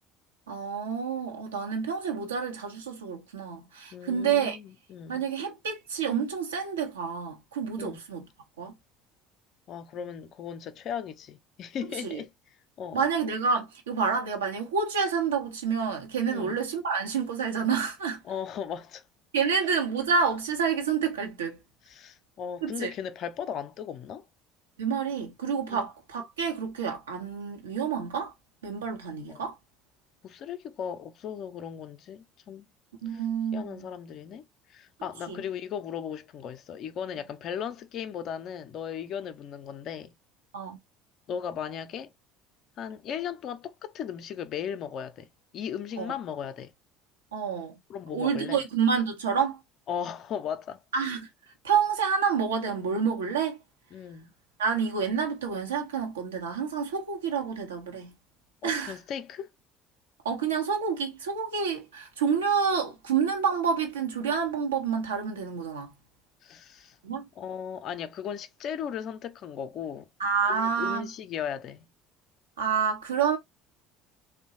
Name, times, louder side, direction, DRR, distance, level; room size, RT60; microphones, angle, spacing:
voice 1, 0.5-4.6 5.1-8.3 8.6-8.7 12.0-12.2 12.9-18.2 19.3-21.6 22.6-22.9 24.8-28.3 28.6-29.6 33.0-33.9 35.3-35.4 40.5-40.8 46.0-46.1 47.3-47.7 48.1-49.6 50.9-51.3 51.6-53.6 54.6-58.1 58.6-58.9 60.2-65.9 67.0-67.3 70.2-71.1 72.6-73.4, right 6 dB, 75° right, 0.7 m, -28 dB
voice 2, 3.9-5.2 7.8-8.0 9.7-12.3 12.8-13.1 16.3-16.6 18.2-19.0 21.9-24.2 25.7-25.8 29.3-29.5 30.2-32.7 33.1-33.2 33.5-34.4 34.7-40.1 41.3-42.1 42.8-45.3 45.5-46.7 47.9-48.6 49.9-50.8 53.9-54.3 58.6-59.5 66.4-67.0 67.4-70.1 70.5-71.9, left 8 dB, 45° left, 0.4 m, -37 dB
3.0 x 2.1 x 2.7 m
figure-of-eight pair, 60°, 0 cm